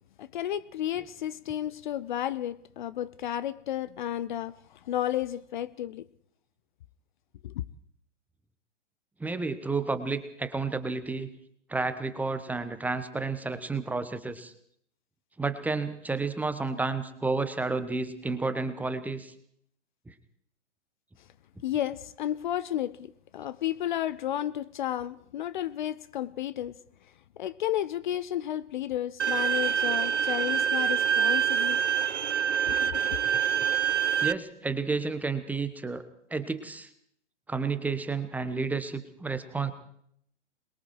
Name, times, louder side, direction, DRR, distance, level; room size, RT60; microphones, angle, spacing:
voice 1, 0.2-6.1 7.4-7.7 21.6-26.8 27.4-31.8 32.7-33.2, left 11 dB, 40° left, 0.8 m, -32 dB
voice 2, 9.2-11.3 11.7-14.5 15.4-19.3 20.1-20.2 34.2-36.0 36.3-36.9 37.5-39.7, right 4 dB, 5° right, 1.2 m, -31 dB
Bowed string instrument, 29.2-34.3, right 8 dB, 75° right, 0.7 m, -26 dB
27.0 x 22.0 x 4.7 m
figure-of-eight pair, 115°, 36 cm